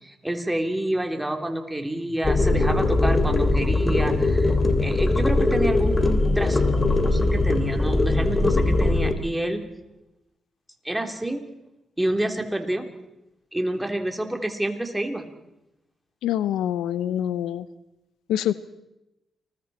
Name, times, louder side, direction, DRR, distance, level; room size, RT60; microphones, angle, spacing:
voice 1, 0.0-4.5 4.8-9.7 10.8-11.4 12.0-12.9 13.5-15.3, right 1 dB, 10° right, 4 dB, 3.4 m, -28 dB
sound 1, 2.2-9.1, left 2 dB, 30° left, 2.7 m, -21 dB
voice 2, 16.2-17.7 18.3-18.5, left 11 dB, 90° left, 15 dB, 0.7 m, -25 dB
29.5 x 21.0 x 4.4 m, 0.92 s
cardioid pair, 65°, 0 cm